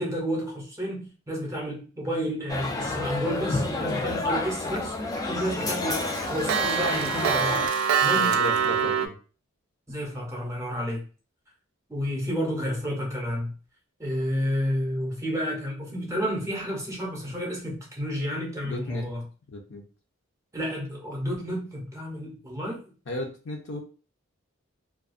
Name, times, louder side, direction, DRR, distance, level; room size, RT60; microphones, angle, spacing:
voice 1, 0.0-4.9 5.3-7.7 8.0-8.4 9.9-11.0 11.9-13.5 14.0-19.2 20.5-22.8, equal, 15° right, 0.7 m, -31 dB
sound 1, 2.5-7.7, left 2 dB, 15° left, 0.3 m, -29 dB
Clock, 4.3-4.8 5.2-5.3 5.6-9.1, right 6 dB, 85° right, 0.3 m, -24 dB
voice 2, 8.1-9.2 18.6-19.0 19.5-19.8 23.1-23.8, left 1 dB, 60° left, 0.6 m, -34 dB
2.4 x 2.2 x 2.4 m
head